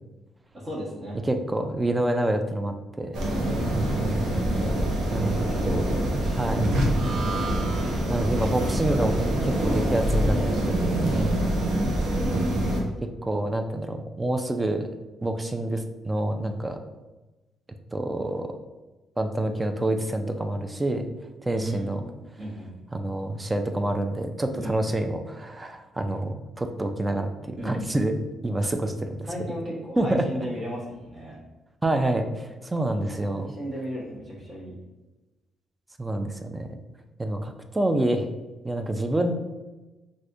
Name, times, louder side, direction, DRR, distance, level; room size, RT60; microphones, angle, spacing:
voice 1, 0.5-1.2 4.5-6.4 11.1-11.5 21.5-22.1 22.4-22.8 24.5-24.8 27.6-28.0 29.3-31.4 33.1-34.7, equal, 40° right, -6 dB, 1.1 m, -36 dB
voice 2, 1.2-3.2 5.1-5.6 6.3-6.7 8.1-10.4 10.7-10.9 13.0-14.9 15.2-16.8 17.9-18.5 19.2-21.1 21.4-22.0 22.9-29.3 30.0-30.3 31.8-33.5 36.0-36.8 37.2-38.3 38.6-39.3, right 1 dB, 15° right, 6 dB, 0.3 m, -27 dB
sound 1, 3.1-12.8, right 1 dB, 75° right, 0.7 m, -25 dB
3.4 x 2.5 x 2.5 m, 1.1 s
cardioid pair, 90°, 0 cm